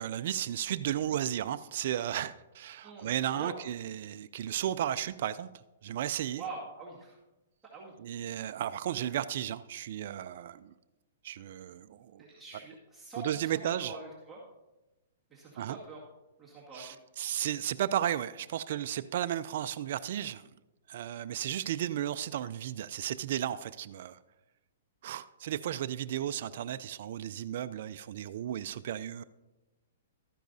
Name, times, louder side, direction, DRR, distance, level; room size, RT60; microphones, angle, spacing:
voice 1, 0.0-5.5 5.8-6.4 8.0-10.7 11.2-12.2 13.2-13.9 15.6-15.8 16.7-20.5 20.9-24.2 25.0-29.2, right 11 dB, 55° right, 11 dB, 0.3 m, -34 dB
voice 2, 2.8-3.6 6.4-7.2 7.7-7.9 12.2-14.4 15.3-16.0 16.4-17.0, right 3 dB, 5° right, -8 dB, 2.0 m, -45 dB
13.0 x 10.0 x 2.7 m, 1.0 s
hypercardioid pair, 150°, 0 cm